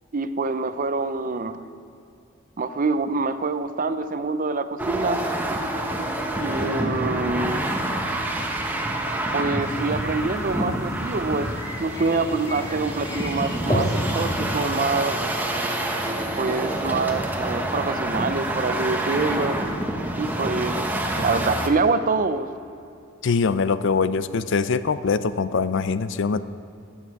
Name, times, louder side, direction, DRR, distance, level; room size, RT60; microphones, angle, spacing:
voice 1, 0.1-1.6 2.6-5.2 6.4-7.6 9.3-11.5 11.8-13.9 14.1-15.3 16.4-19.6 20.2-22.5, right 3 dB, 40° right, 11 dB, 0.5 m, -25 dB
sound 1, 4.8-21.7, right 1 dB, 10° right, 1.0 m, -27 dB
sound 2, 9.6-14.7, equal, 20° left, 1.7 m, -31 dB
voice 2, 23.2-26.4, left 5 dB, 60° left, 14 dB, 0.5 m, -23 dB
15.0 x 10.0 x 4.7 m, 2.6 s
head